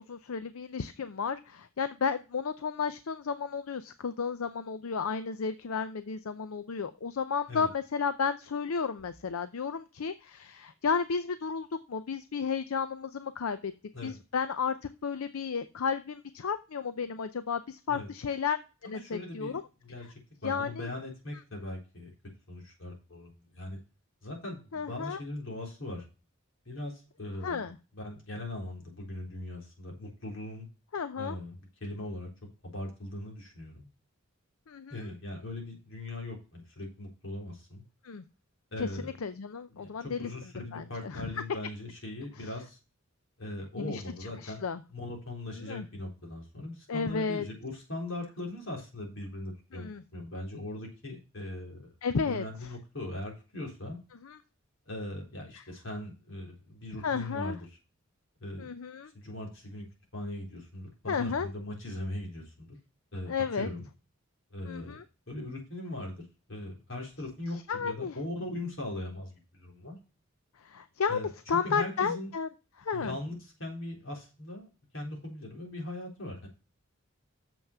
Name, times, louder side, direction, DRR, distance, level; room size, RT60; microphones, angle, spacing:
voice 1, 0.0-13.7 14.0-18.6 18.8-19.6 20.4-20.9 24.7-25.2 27.4-27.8 30.9-31.4 34.7-35.1 38.0-38.2 38.8-40.3 40.7-41.3 43.8-44.0 44.4-44.8 45.7-45.9 46.9-47.4 49.7-50.0 52.0-52.4 54.2-54.4 55.6-55.7 57.0-57.6 58.6-59.1 61.1-61.5 63.3-63.7 64.6-65.0 67.7-68.2 70.6-72.5 72.8-73.2, left 5 dB, 80° left, 12 dB, 0.5 m, -33 dB
voice 2, 18.8-19.6 19.8-20.1 20.4-22.1 22.5-23.8 24.2-26.0 26.7-27.7 27.9-30.7 31.2-32.3 32.6-33.9 34.9-37.8 38.7-39.1 39.7-42.8 43.4-44.6 44.9-51.9 52.3-54.0 54.9-57.7 58.4-58.7 59.1-59.8 60.1-62.8 63.1-63.9 64.5-65.0 65.3-66.2 66.5-70.0 71.1-71.3 71.6-72.3 72.9-74.7 74.9-76.5, left 1 dB, 65° left, 0 dB, 3.8 m, -40 dB
7.1 x 5.7 x 6.6 m, 0.32 s
head